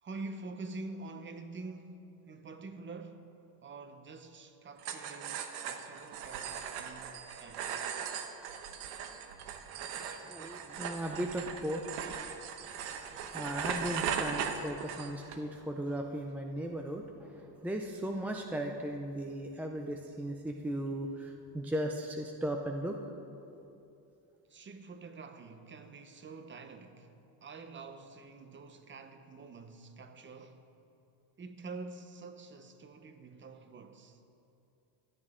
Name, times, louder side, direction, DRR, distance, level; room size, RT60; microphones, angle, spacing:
voice 1, 0.0-3.3 3.6-7.7 24.5-27.1 27.4-30.7 31.4-34.2, right 3 dB, 25° right, 0.8 m, -47 dB
sound 1, 4.8-15.4, right 7 dB, 80° right, 1.1 m, -39 dB
voice 2, 10.0-11.9 12.9-23.0, right 1 dB, 5° right, 0.3 m, -37 dB
16.0 x 11.5 x 3.7 m
cardioid pair, 120°, 48 cm